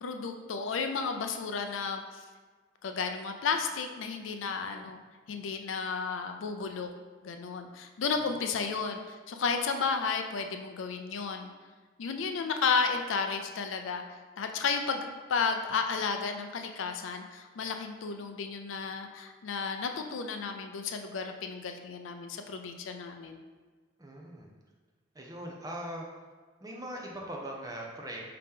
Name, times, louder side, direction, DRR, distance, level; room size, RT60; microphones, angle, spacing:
voice 1, 0.0-2.2 2.8-5.0 5.3-6.9 7.2-11.5 12.0-23.4, left 5 dB, 85° left, 6 dB, 0.4 m, -33 dB
voice 2, 24.0-24.5 25.1-26.1 26.6-28.2, right 1 dB, 20° right, -1 dB, 0.5 m, -40 dB
4.9 x 2.8 x 3.6 m, 1.4 s
head